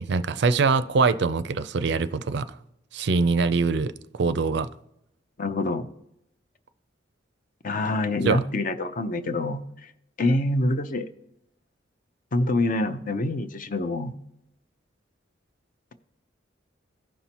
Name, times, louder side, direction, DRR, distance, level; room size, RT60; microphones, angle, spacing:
voice 1, 0.0-2.6 2.9-4.7 8.2-8.4, right 4 dB, 60° right, 0.4 m, -23 dB
voice 2, 5.4-5.9 7.6-9.9 10.2-11.1 12.3-14.1, left 2 dB, 45° left, 0.6 m, -26 dB
15.5 x 5.5 x 2.9 m
head